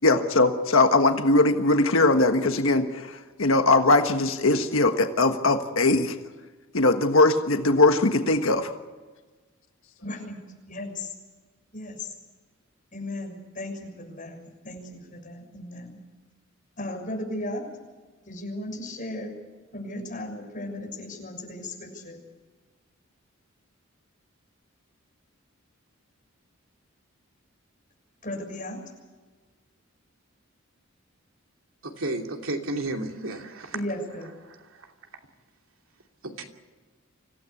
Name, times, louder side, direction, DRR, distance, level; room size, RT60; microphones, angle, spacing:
voice 1, 0.0-6.2 6.7-8.7, left 2 dB, 75° left, 6 dB, 1.5 m, -21 dB
voice 2, 10.0-10.4 10.7-11.1 11.7-12.1 12.9-16.0 16.8-17.7 18.2-19.3 19.7-22.2 28.2-28.8 33.7-34.3, left 1 dB, 40° left, 1 dB, 6.7 m, -36 dB
voice 3, 31.8-33.7 36.2-36.4, right 2 dB, 80° right, 3 dB, 2.8 m, -32 dB
25.5 x 16.5 x 8.5 m, 1.4 s
head